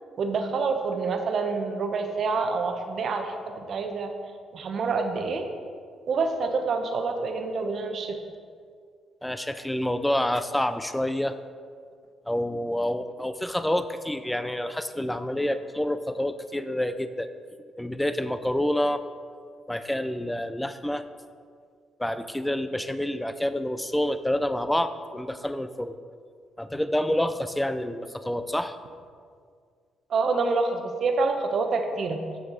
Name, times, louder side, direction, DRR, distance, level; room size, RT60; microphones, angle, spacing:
voice 1, 0.2-4.1 4.5-5.5 6.1-8.2 30.1-32.2, right 4 dB, 55° right, 5 dB, 0.8 m, -27 dB
voice 2, 9.2-11.4 12.3-17.3 17.8-19.0 19.7-21.0 22.0-26.0 26.6-28.8, left 1 dB, 5° left, 11 dB, 0.4 m, -28 dB
7.2 x 6.9 x 3.9 m, 2.1 s
cardioid pair, 90°, 0 cm